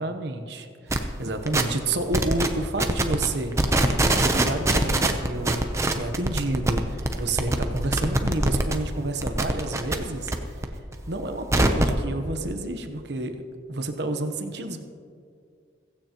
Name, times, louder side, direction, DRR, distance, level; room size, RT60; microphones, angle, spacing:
voice 1, 0.0-5.6 5.9-10.3 11.1-13.3 13.7-14.8, right 2 dB, 60° right, 6 dB, 1.0 m, -30 dB
sound 1, 0.9-1.1 1.5-1.8 2.1-2.5 2.8-3.3 3.5-8.7 9.1-10.3 10.6-12.0, right 1 dB, 15° right, 0.7 m, -23 dB
16.0 x 15.5 x 3.0 m, 2.3 s
head